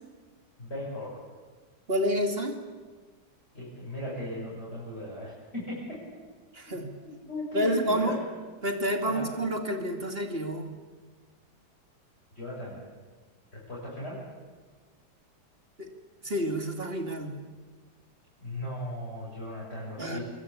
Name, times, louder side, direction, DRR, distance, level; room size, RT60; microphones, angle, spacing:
voice 1, 0.6-1.2 3.5-6.0 7.0-8.3 9.0-9.3 12.3-12.8 13.5-14.2 18.4-20.2, left 1 dB, 35° left, -6 dB, 7.1 m, -37 dB
voice 2, 1.9-2.6 6.5-6.9 7.5-8.2 8.6-10.7 15.8-15.9 16.2-17.3 20.0-20.2, equal, 30° right, 4 dB, 2.8 m, -29 dB
28.5 x 21.5 x 8.7 m, 1.4 s
omnidirectional pair, 2.0 m